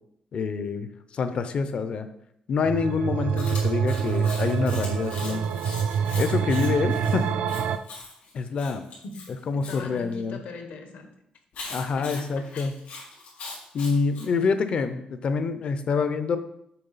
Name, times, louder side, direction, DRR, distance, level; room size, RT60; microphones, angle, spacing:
voice 1, 0.3-2.1 2.5-5.4 6.2-7.3 8.3-8.8 9.5-10.4 11.7-12.7 13.7-16.4, left 5 dB, 45° left, 10 dB, 0.4 m, -26 dB
sound 1, 2.6-7.8, right 7 dB, 65° right, 0.3 m, -26 dB
Chewing mastication, 3.4-9.8 11.5-14.3, left 3 dB, 90° left, 2.1 m, -41 dB
voice 2, 9.0-11.1 12.0-12.7, left 4 dB, 70° left, 5 dB, 0.9 m, -41 dB
6.7 x 4.0 x 3.9 m, 0.76 s
wide cardioid pair, 180°, 3 cm